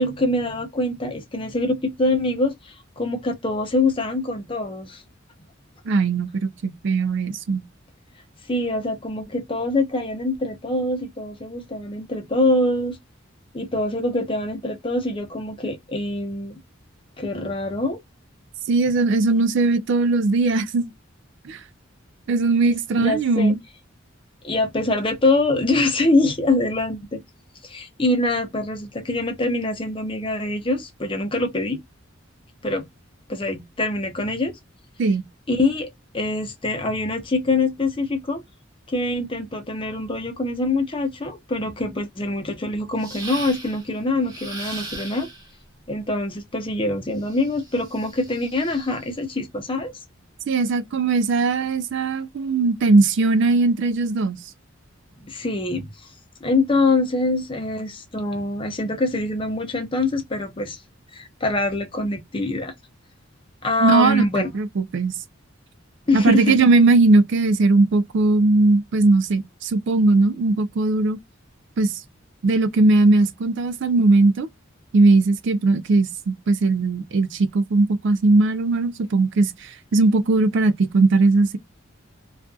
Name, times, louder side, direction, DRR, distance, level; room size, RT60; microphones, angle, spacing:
voice 1, 0.0-5.0 8.5-13.0 13.5-16.6 17.2-18.0 23.0-23.5 24.4-27.2 27.6-31.8 32.6-32.9 33.3-34.6 35.5-35.9 36.1-38.4 38.9-45.3 45.9-49.9 55.2-55.9 56.4-60.8 61.1-62.7 63.6-64.5 66.1-66.6, left 2 dB, 25° left, 0.6 m, -24 dB
voice 2, 5.9-7.6 18.7-20.9 21.4-21.6 22.3-23.6 35.0-35.2 50.5-54.4 63.8-65.1 66.1-71.2 71.8-72.0 72.4-74.5 74.9-81.6, right 3 dB, 60° right, 0.4 m, -19 dB
sound 1, 43.0-43.9 44.3-45.5 47.2-49.1, right 2 dB, 20° right, 1.0 m, -38 dB
2.5 x 2.4 x 2.3 m
head